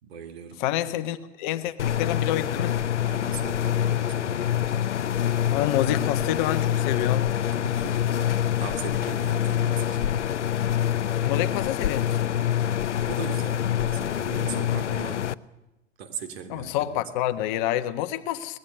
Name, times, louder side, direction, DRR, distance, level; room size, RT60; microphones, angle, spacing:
voice 1, 0.0-0.6 3.0-4.6 7.6-10.2 13.1-15.3 16.0-17.1, right 6 dB, 55° right, 7 dB, 2.8 m, -39 dB
voice 2, 0.6-2.8 5.5-7.3 11.2-12.3 16.5-18.6, left 12 dB, 40° left, 12 dB, 1.1 m, -28 dB
sound 1, 1.8-15.3, left 10 dB, 70° left, 0.7 m, -26 dB
23.0 x 19.5 x 6.8 m, 0.99 s
figure-of-eight pair, 95°, 37 cm